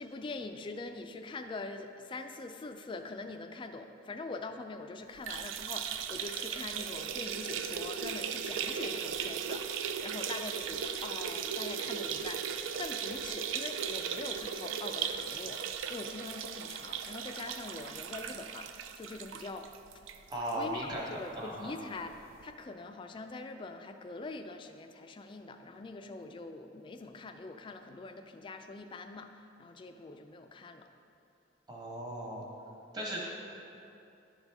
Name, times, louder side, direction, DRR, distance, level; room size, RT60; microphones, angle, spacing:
voice 1, 0.0-18.7 19.0-19.7 20.5-22.1 22.4-30.9, left 3 dB, 25° left, 7 dB, 0.3 m, -43 dB
sound 1, 5.2-20.6 20.9-21.0 21.3-21.4 22.4-22.5, right 7 dB, 75° right, 0.3 m, -37 dB
voice 2, 20.3-21.8 31.7-32.5 32.9-33.2, right 1 dB, 20° right, -3 dB, 1.1 m, -37 dB
10.5 x 4.1 x 3.5 m, 2.8 s
head